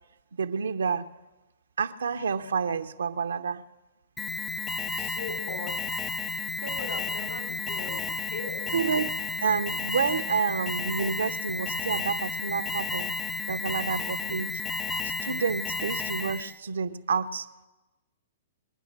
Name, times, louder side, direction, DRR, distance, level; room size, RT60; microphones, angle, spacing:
voice 1, 0.3-1.1 1.8-3.6 8.7-9.1 9.4-13.1 13.5-14.5 15.0-17.5, right 6 dB, 85° right, 10 dB, 0.6 m, -29 dB
Alarm, 4.2-16.6, left 3 dB, 15° left, 0.5 m, -32 dB
voice 2, 4.9-6.0 6.6-8.8, left 3 dB, 55° left, 4 dB, 3.7 m, -39 dB
22.0 x 9.9 x 6.6 m, 1.1 s
hypercardioid pair, 125°, 0 cm